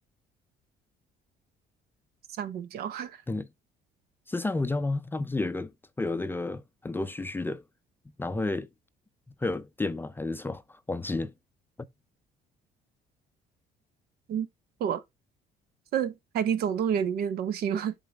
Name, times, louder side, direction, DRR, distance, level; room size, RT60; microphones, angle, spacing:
voice 1, 2.4-3.2 14.3-14.5 14.8-15.0 15.9-17.9, right 8 dB, 65° right, 0.8 m, -29 dB
voice 2, 4.3-5.7 6.0-7.6 8.2-8.7 9.4-11.3, left 2 dB, 10° left, 0.4 m, -31 dB
7.5 x 4.0 x 3.3 m
cardioid pair, 110°, 17 cm